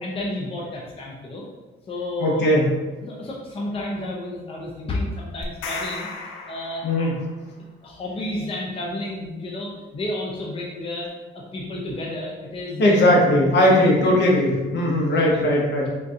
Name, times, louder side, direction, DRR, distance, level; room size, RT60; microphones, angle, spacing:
voice 1, 0.0-1.4 1.9-2.5 2.9-6.1 6.5-7.1 7.8-13.1 13.6-14.1 15.1-15.5, left 1 dB, 30° left, -3 dB, 0.5 m, -31 dB
voice 2, 2.2-2.6 6.8-7.1 12.8-15.9, left 1 dB, 60° left, -2 dB, 0.9 m, -18 dB
sound 1, 5.4-7.4, left 3 dB, 80° left, 0.5 m, -35 dB
3.7 x 2.7 x 2.4 m, 1.2 s
cardioid pair, 90°, 20 cm